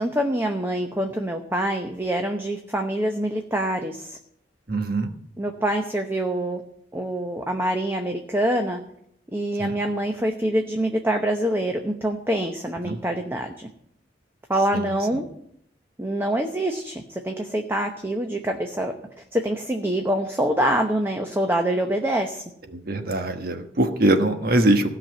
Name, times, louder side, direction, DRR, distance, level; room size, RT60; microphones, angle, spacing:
voice 1, 0.0-4.2 5.4-6.6 6.9-8.8 9.3-13.7 14.5-15.3 16.0-18.9 19.3-22.4, right 1 dB, 15° right, 4 dB, 0.8 m, -25 dB
voice 2, 4.7-5.1 9.6-9.7 12.8-13.0 14.7-14.8 22.9-24.9, right 1 dB, 55° right, 7 dB, 1.3 m, -22 dB
16.0 x 5.8 x 9.0 m, 0.71 s
head